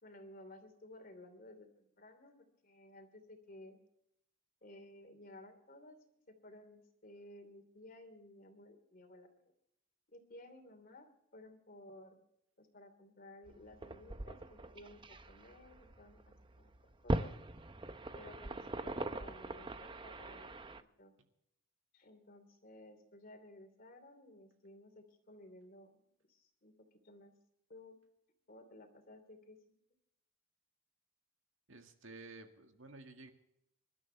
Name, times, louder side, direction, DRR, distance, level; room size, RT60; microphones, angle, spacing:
voice 1, 0.0-2.3 2.6-3.8 4.6-6.0 6.3-9.3 10.1-11.1 11.3-12.2 12.6-16.7 17.0-17.3 18.1-20.5 21.0-21.1 21.9-26.7 27.0-27.3 27.7-27.9 28.5-29.6, left 1 dB, 45° left, 7 dB, 2.9 m, -56 dB
sound 1, 13.5-20.8, right 1 dB, 25° right, 0.7 m, -42 dB
voice 2, 31.7-33.3, right 3 dB, 65° right, 5 dB, 2.0 m, -53 dB
26.5 x 12.5 x 3.4 m, 0.77 s
head